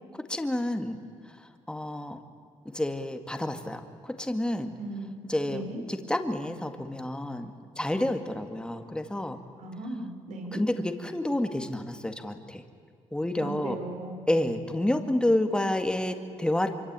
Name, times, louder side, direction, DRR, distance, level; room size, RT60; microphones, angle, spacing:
voice 1, 0.3-1.0 1.2-2.2 2.7-4.7 5.3-5.6 5.9-9.4 10.5-12.6 13.1-13.8 14.3-16.7, left 1 dB, 5° left, 7 dB, 2.1 m, -29 dB
voice 2, 4.8-5.1 5.4-5.8 9.6-10.6 13.4-14.2, right 2 dB, 85° right, 5 dB, 4.2 m, -37 dB
25.5 x 24.5 x 9.1 m, 2.3 s
cardioid pair, 105°, 12 cm